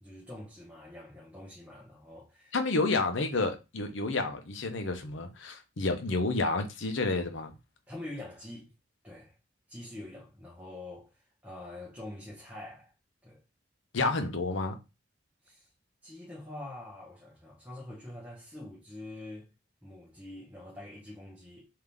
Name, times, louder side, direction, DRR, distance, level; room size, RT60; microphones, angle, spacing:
voice 1, 0.0-2.6 7.9-8.7 9.0-9.3 9.7-12.9 13.2-13.4 15.4-15.7 16.0-19.5 19.8-21.7, left 1 dB, 10° right, 1.0 m, -45 dB
voice 2, 2.5-7.5 13.9-14.8, left 3 dB, 70° left, 0.8 m, -30 dB
3.7 x 2.8 x 3.4 m
head